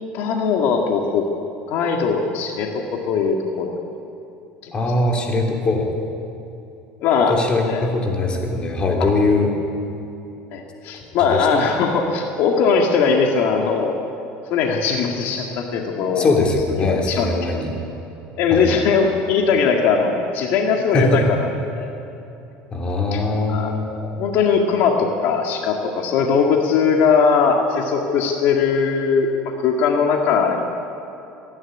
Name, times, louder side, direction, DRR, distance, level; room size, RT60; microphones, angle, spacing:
voice 1, 0.1-1.3 1.7-3.8 4.6-4.7 7.0-7.4 7.7-7.9 9.0-9.1 10.5-14.0 14.5-16.5 16.8-17.3 18.4-21.5 21.7-21.9 23.1-23.2 23.5-30.6, left 5 dB, 60° left, 2 dB, 1.9 m, -20 dB
voice 2, 4.7-5.9 7.3-9.5 11.3-11.6 16.2-17.7 18.5-18.7 20.9-21.2 22.7-23.9, left 2 dB, 25° left, 1 dB, 3.3 m, -21 dB
24.5 x 11.0 x 9.8 m, 2.8 s
cardioid pair, 140°, 4 cm